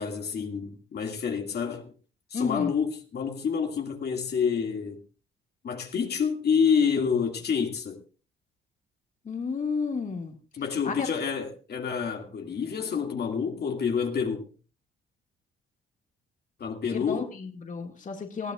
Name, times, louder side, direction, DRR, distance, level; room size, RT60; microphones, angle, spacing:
voice 1, 0.0-1.9 2.3-5.0 5.6-8.0 10.5-14.5 16.6-17.3, left 6 dB, 55° left, 2.3 m, -28 dB
voice 2, 2.3-2.7 9.2-10.4 10.8-11.1 16.9-18.5, left 5 dB, 40° left, 2.2 m, -32 dB
20.5 x 15.5 x 2.5 m
cardioid pair, 90°, 20 cm